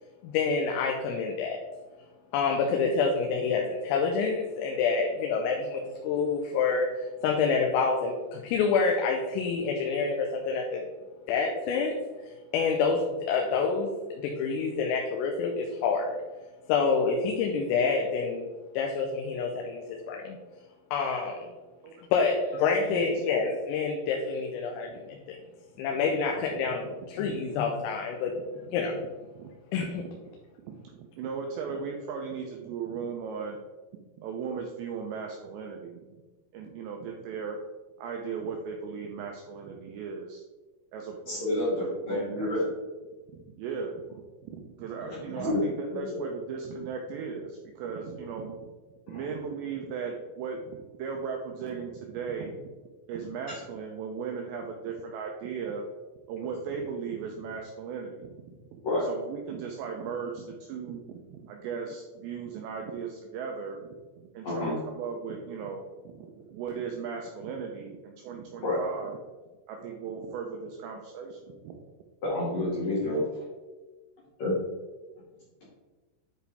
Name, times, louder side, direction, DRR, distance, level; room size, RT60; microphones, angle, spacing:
voice 1, 0.2-1.6 2.3-10.8 11.3-12.0 12.2-16.2 16.7-18.5 18.8-20.4 20.9-21.5 22.1-25.4 25.8-28.3 28.7-29.0 29.7-30.0, left 5 dB, 85° left, 2 dB, 3.4 m, -27 dB
voice 2, 22.8-23.3 24.9-25.0 27.3-27.4 28.4-28.8 29.4-29.5 29.8-30.4 30.7-33.6 34.2-36.2 36.5-37.6 38.0-40.4 40.9-42.5 43.3-44.0 44.4-48.7 49.1-52.7 53.1-55.8 56.3-58.3 58.7-58.8 59.1-63.8 64.2-69.2 69.7-71.8, right 6 dB, 90° right, 2 dB, 2.5 m, -37 dB
voice 3, 41.3-42.6 45.0-45.6 45.9-46.1 49.1-49.2 58.8-59.1 64.4-64.7 68.6-68.8 72.2-73.4 74.4-74.5, left 1 dB, 50° left, -8 dB, 2.4 m, -29 dB
9.9 x 4.7 x 3.4 m, 1.2 s
omnidirectional pair, 5.9 m